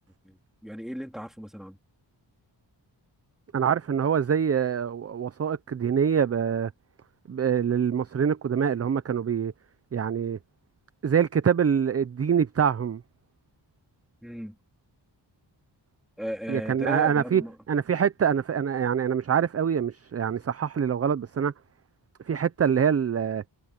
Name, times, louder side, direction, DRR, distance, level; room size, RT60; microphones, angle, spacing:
voice 1, 0.2-1.8 14.2-14.6 16.2-17.6, equal, ahead, 3.2 m, -36 dB
voice 2, 3.5-6.7 7.3-9.5 9.9-10.4 11.0-13.0 16.5-17.4 17.7-21.5 22.3-23.4, right 7 dB, 35° right, 0.5 m, -25 dB
wide cardioid pair, 155°, 44 cm